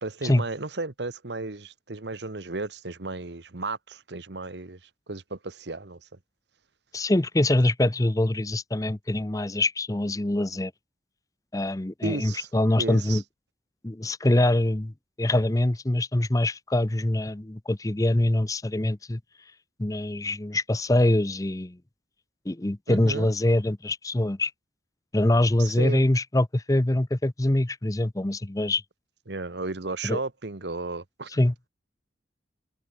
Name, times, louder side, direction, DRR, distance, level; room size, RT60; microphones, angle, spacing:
voice 1, 0.0-4.8 5.1-6.0 12.0-12.5 12.8-13.2 22.9-23.3 25.6-26.0 29.3-31.4, right 3 dB, 70° right, 1.3 m, -34 dB
voice 2, 6.9-10.7 11.5-13.2 13.8-14.9 15.2-19.2 19.8-21.8 22.5-24.5 25.1-28.8 30.0-30.2 31.3-31.5, left 1 dB, 20° left, 0.6 m, -24 dB
head